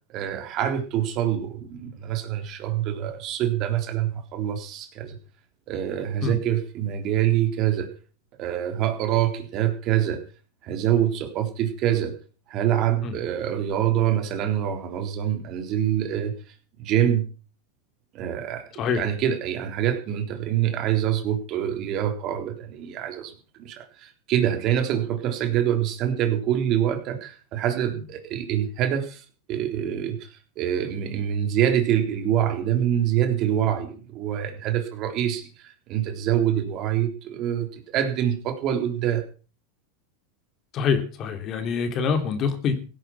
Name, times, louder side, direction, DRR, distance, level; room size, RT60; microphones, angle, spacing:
voice 1, 0.1-5.2 5.7-7.9 8.4-10.2 10.6-12.2 12.5-16.3 16.8-17.2 18.1-18.7 19.0-23.3 23.6-39.2, right 10 dB, 45° right, 6 dB, 3.6 m, -25 dB
voice 2, 40.7-42.8, left 6 dB, 40° left, 8 dB, 3.3 m, -25 dB
16.5 x 9.9 x 6.2 m, 0.37 s
supercardioid pair, 120°, 0 cm